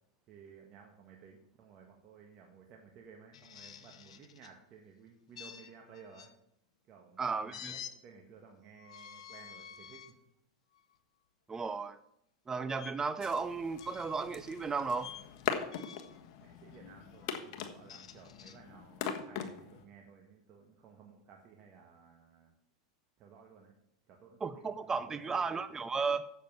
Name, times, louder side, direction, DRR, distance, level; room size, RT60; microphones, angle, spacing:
voice 1, 0.3-6.3 6.9-10.2 16.4-22.5 23.2-23.7 24.1-25.6, right 6 dB, 40° right, 1 dB, 1.6 m, -56 dB
sound 1, 3.3-4.5 5.4-6.3 7.5-7.9 8.8-10.1 10.7-11.0 12.7-12.9 13.8-14.3 15.0-15.3 15.7-16.2 17.6-18.6, left 8 dB, 85° left, 0.9 m, -49 dB
voice 2, 7.2-7.7 11.5-12.0 12.5-15.1 24.4-26.3, right 4 dB, 15° right, 14 dB, 0.5 m, -34 dB
sound 2, 13.2-19.8, left 8 dB, 55° left, 1.4 m, -41 dB
7.6 x 7.3 x 7.2 m, 0.79 s
hypercardioid pair, 115°, 3 cm